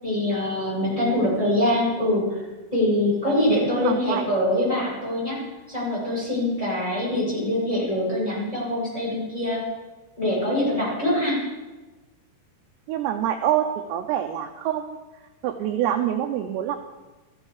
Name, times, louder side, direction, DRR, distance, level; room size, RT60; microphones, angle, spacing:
voice 1, 0.0-2.4 2.7-5.4 5.7-9.6 10.2-11.4, left 1 dB, 5° left, -7 dB, 6.0 m, -24 dB
voice 2, 3.6-4.2 12.9-15.0 15.4-16.8, right 11 dB, 80° right, 6 dB, 2.6 m, -26 dB
15.5 x 13.5 x 4.9 m, 1.2 s
omnidirectional pair, 5.6 m